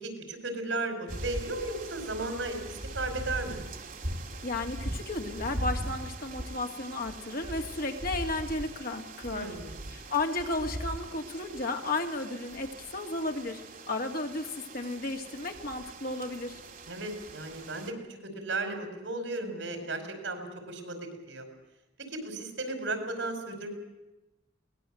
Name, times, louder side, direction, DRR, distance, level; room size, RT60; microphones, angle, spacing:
voice 1, 0.0-3.6 9.3-9.8 16.9-17.9 18.2-21.5 22.1-23.7, right 2 dB, 75° right, 6 dB, 5.1 m, -35 dB
sound 1, 1.1-17.9, right 1 dB, 50° right, 2.1 m, -40 dB
voice 2, 4.4-9.5 9.9-13.6 13.9-16.6, left 2 dB, 50° left, 4 dB, 2.4 m, -33 dB
23.0 x 19.5 x 7.8 m, 1.0 s
head